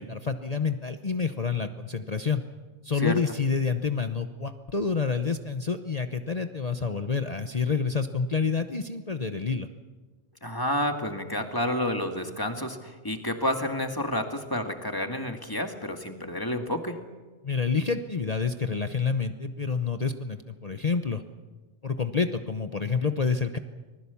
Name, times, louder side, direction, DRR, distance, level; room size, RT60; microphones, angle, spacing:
voice 1, 0.0-2.4 2.8-9.7 17.4-21.2 21.8-23.6, left 5 dB, 35° left, 8 dB, 0.9 m, -28 dB
voice 2, 10.4-17.0, left 1 dB, 15° left, 4 dB, 2.0 m, -30 dB
25.5 x 20.0 x 7.1 m, 1.3 s
omnidirectional pair, 1.3 m